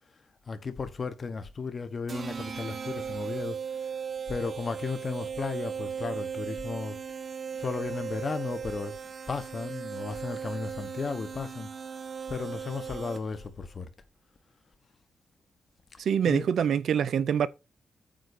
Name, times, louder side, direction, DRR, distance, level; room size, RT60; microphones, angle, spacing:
voice 1, 0.5-3.9 4.3-7.0 7.5-9.0 9.3-11.7 12.3-13.9 16.3-16.5, left 4 dB, 30° left, 1.1 m, -35 dB
sound 1, 2.1-13.5, right 7 dB, 35° right, 0.9 m, -37 dB
voice 2, 16.0-17.5, right 8 dB, 65° right, 0.7 m, -25 dB
9.0 x 3.8 x 6.8 m
wide cardioid pair, 160°, 0 cm